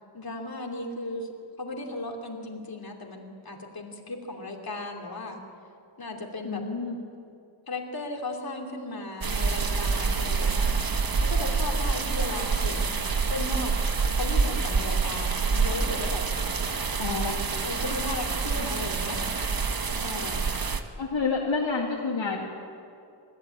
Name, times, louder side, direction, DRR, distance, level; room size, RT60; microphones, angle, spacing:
voice 1, 0.1-1.3 1.6-5.4 6.0-6.6 7.7-10.9 11.2-12.9 13.3-13.7 14.2-16.2 17.6-19.4 19.9-20.5, left 2 dB, 45° left, 1 dB, 3.0 m, -36 dB
voice 2, 6.4-7.0 17.0-17.4 21.0-22.4, left 4 dB, 60° left, -4 dB, 2.9 m, -28 dB
sound 1, 9.2-20.8, right 4 dB, 45° right, 1.3 m, -27 dB
21.5 x 14.5 x 8.7 m, 2.5 s
wide cardioid pair, 75°, 49 cm